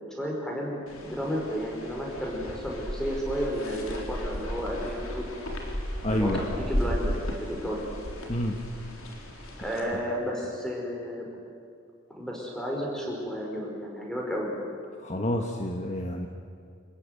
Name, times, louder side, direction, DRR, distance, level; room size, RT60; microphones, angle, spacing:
voice 1, 0.1-5.3 6.1-7.9 9.6-11.3 12.2-14.5, equal, 5° left, -2 dB, 5.1 m, -32 dB
sound 1, 0.9-9.8, equal, 80° left, 4.0 m, -35 dB
voice 2, 6.0-6.6 8.3-8.6 15.0-16.3, left 1 dB, 35° left, 3 dB, 1.3 m, -29 dB
27.0 x 15.5 x 9.6 m, 2.3 s
head